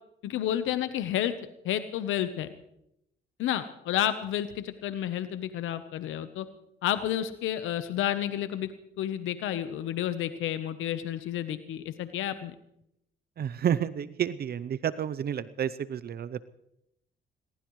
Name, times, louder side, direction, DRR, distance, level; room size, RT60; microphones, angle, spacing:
voice 1, 0.2-1.3 1.6-2.5 3.4-6.5 6.8-8.7 9.0-12.5, left 11 dB, 85° left, 11 dB, 1.0 m, -30 dB
voice 2, 13.4-16.4, right 9 dB, 55° right, 16 dB, 0.7 m, -30 dB
22.0 x 19.5 x 3.2 m, 0.79 s
cardioid pair, 90°, 20 cm